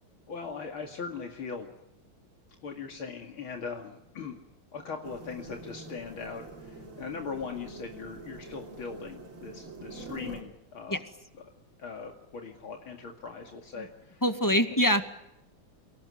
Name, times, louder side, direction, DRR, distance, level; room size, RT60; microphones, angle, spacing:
voice 1, 0.3-1.7 2.6-4.4 4.7-11.0 11.8-14.2 14.7-14.8, left 5 dB, 75° left, 2 dB, 3.1 m, -40 dB
sound 1, 5.0-10.4, right 2 dB, 85° right, 4.7 m, -45 dB
voice 2, 14.2-15.1, equal, 10° left, 8 dB, 1.6 m, -24 dB
30.0 x 18.5 x 9.7 m, 0.88 s
omnidirectional pair, 2.3 m